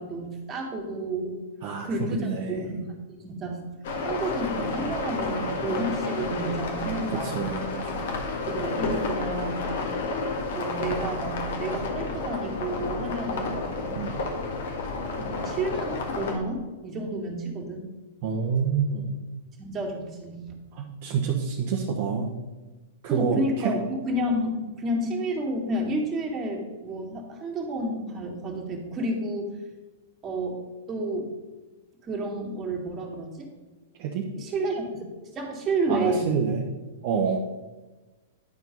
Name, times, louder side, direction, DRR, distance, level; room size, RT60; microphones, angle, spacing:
voice 1, 0.0-1.4 1.8-7.6 8.5-9.7 10.5-13.7 15.2-17.9 19.6-20.6 23.1-29.5 30.2-30.6 30.9-31.3 32.0-33.5 34.4-36.4, right 1 dB, 25° right, 0 dB, 2.3 m, -31 dB
voice 2, 1.6-2.6 7.1-8.1 13.9-14.2 18.2-19.1 20.7-22.4 23.0-23.7 34.0-34.3 35.9-36.6 37.0-37.4, right 6 dB, 50° right, -1 dB, 1.1 m, -28 dB
sound 1, 3.8-16.4, left 3 dB, 65° left, 1.6 m, -31 dB
10.5 x 4.5 x 5.4 m, 1.2 s
hypercardioid pair, 110°, 0 cm